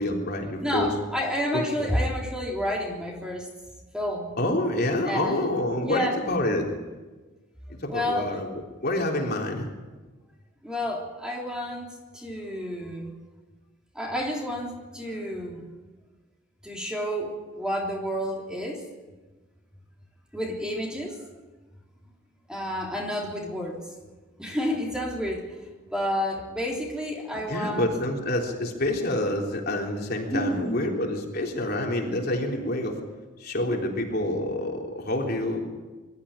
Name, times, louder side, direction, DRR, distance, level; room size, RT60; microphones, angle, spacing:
voice 1, 0.0-0.9 1.5-1.9 4.4-6.7 7.8-8.5 8.8-9.7 27.5-33.0 33.4-35.6, left 1 dB, 50° left, 0 dB, 3.6 m, -27 dB
voice 2, 0.6-3.5 3.9-4.3 5.0-5.5 5.8-6.1 7.9-8.4 10.6-13.1 13.9-15.7 16.6-18.8 20.3-21.2 22.5-23.8 24.4-25.6 25.9-27.9 30.3-30.8, equal, 5° right, -1 dB, 3.4 m, -30 dB
23.0 x 13.5 x 9.9 m, 1.2 s
head